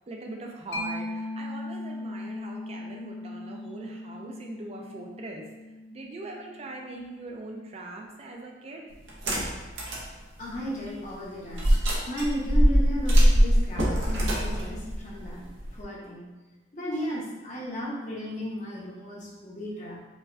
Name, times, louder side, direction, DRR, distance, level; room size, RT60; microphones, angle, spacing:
voice 1, 0.1-5.4 5.9-8.9, right 2 dB, 35° right, 1 dB, 0.4 m, -41 dB
Mallet percussion, 0.7-8.0, left 2 dB, 75° left, 0.5 m, -39 dB
sound 1, 9.1-10.1 10.5-10.6 11.5-15.8, equal, 90° right, 0.8 m, -22 dB
voice 2, 10.4-11.8 12.1-15.5 15.7-16.2 16.7-20.0, equal, 40° left, -5 dB, 0.7 m, -34 dB
4.6 x 2.2 x 2.5 m, 1.1 s
head